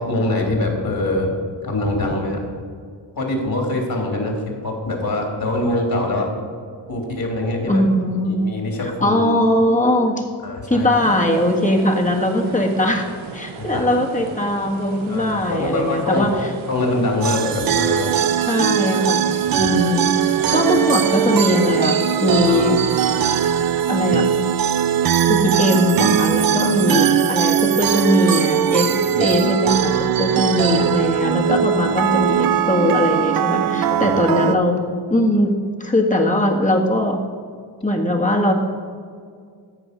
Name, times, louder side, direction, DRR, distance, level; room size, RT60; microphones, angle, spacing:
voice 1, 0.0-1.3 1.6-2.5 3.2-4.4 4.6-6.3 6.9-7.8 8.2-9.2 10.4-10.9 13.6-13.9 15.1-18.1 19.4-19.7 26.6-26.7 29.1-29.3 33.5-34.2, left 2 dB, 45° left, 1 dB, 3.0 m, -24 dB
voice 2, 7.7-8.5 9.0-10.2 10.7-13.1 13.3-16.5 18.5-19.3 19.6-20.2 20.5-22.8 23.9-24.2 25.2-34.8 35.1-35.5 35.8-37.2 37.8-38.5, left 1 dB, 15° left, 1 dB, 1.6 m, -20 dB
sound 1, 10.8-23.7, right 5 dB, 80° right, 0.9 m, -37 dB
sound 2, 17.2-34.6, right 9 dB, 50° right, 0.5 m, -20 dB
14.0 x 5.3 x 5.2 m, 2.1 s
cardioid pair, 60°, 47 cm